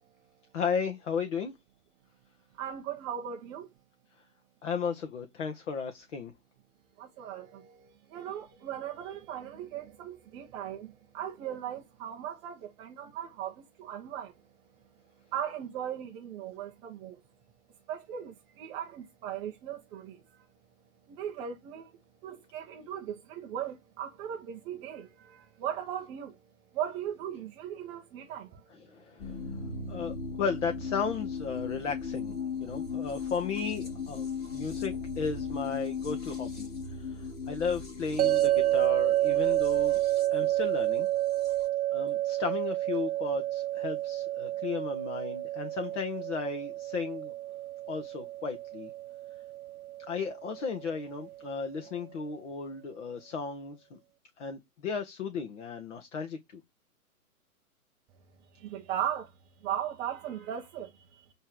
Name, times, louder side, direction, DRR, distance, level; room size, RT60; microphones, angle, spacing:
voice 1, 0.5-1.5 4.6-6.3 28.7-29.6 29.9-40.0 40.3-41.1 41.9-47.3 47.9-48.9 50.1-54.0 54.4-56.6, left 5 dB, 55° left, 1.8 m, -35 dB
voice 2, 2.6-3.7 7.0-14.4 15.3-17.2 17.9-20.5 21.1-21.9 22.2-26.4 26.7-28.6 58.6-59.3 59.6-61.3, right 10 dB, 10° right, 0.5 m, -38 dB
sound 1, 29.2-41.7, left 5 dB, 20° left, 2.6 m, -38 dB
sound 2, 38.2-51.3, right 15 dB, 75° right, 0.5 m, -30 dB
8.7 x 3.5 x 6.4 m
hypercardioid pair, 130°, 44 cm